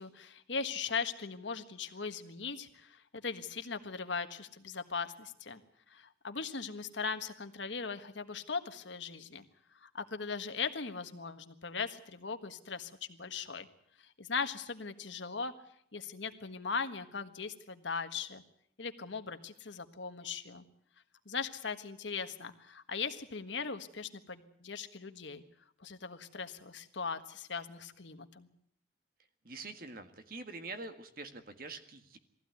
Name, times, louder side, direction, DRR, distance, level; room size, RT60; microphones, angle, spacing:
voice 1, 0.0-5.6 5.9-9.4 9.8-13.7 14.0-15.5 15.9-18.4 18.8-20.6 21.2-25.4 25.8-28.5, left 5 dB, 80° left, 9 dB, 1.5 m, -39 dB
voice 2, 29.4-32.2, right 3 dB, 50° right, 7 dB, 1.8 m, -45 dB
21.0 x 15.5 x 9.5 m, 0.70 s
head